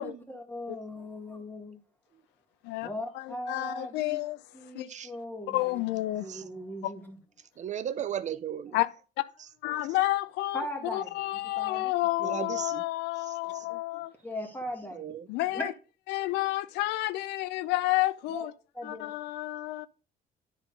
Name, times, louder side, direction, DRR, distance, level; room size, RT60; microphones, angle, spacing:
voice 1, 0.0-1.8 2.8-4.2 4.5-5.8 6.2-7.2 10.5-11.9 12.2-12.5 14.2-15.1 15.5-15.8 18.3-18.5 18.7-19.1, left 1 dB, 10° left, 2.0 m, -39 dB
voice 2, 3.1-4.9 5.5-6.3 6.8-6.9 8.7-8.9 9.2-9.3 9.6-10.6 10.9-14.1 15.3-15.7 16.1-18.5 18.8-19.9, left 17 dB, 90° left, 0.5 m, -30 dB
voice 3, 7.6-8.8 9.4-9.5 12.2-12.8 13.2-13.7 14.9-15.3, right 9 dB, 45° right, 0.5 m, -37 dB
9.9 x 3.8 x 5.1 m
cardioid pair, 110°, 17 cm